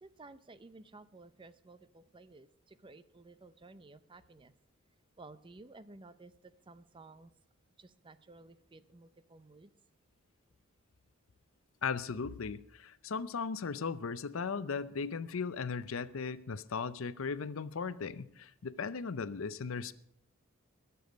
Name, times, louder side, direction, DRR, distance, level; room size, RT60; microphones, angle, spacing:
voice 1, 0.0-4.5 5.2-7.3 7.8-9.7, right 3 dB, 25° right, 14 dB, 0.6 m, -55 dB
voice 2, 11.8-19.9, left 5 dB, 85° left, 15 dB, 0.6 m, -37 dB
21.0 x 7.0 x 5.2 m, 0.71 s
head